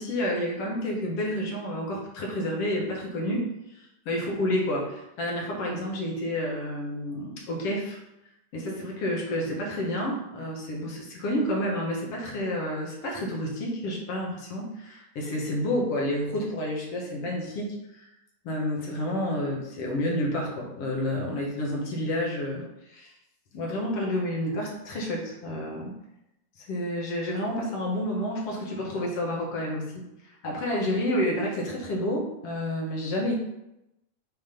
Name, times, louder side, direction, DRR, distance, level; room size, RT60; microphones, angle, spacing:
voice 1, 0.0-3.8 4.1-8.0 8.5-18.1 18.4-23.1 23.5-25.9 26.7-33.4, left 1 dB, 55° left, -2 dB, 2.3 m, -30 dB
7.8 x 4.2 x 5.2 m, 0.88 s
omnidirectional pair, 3.7 m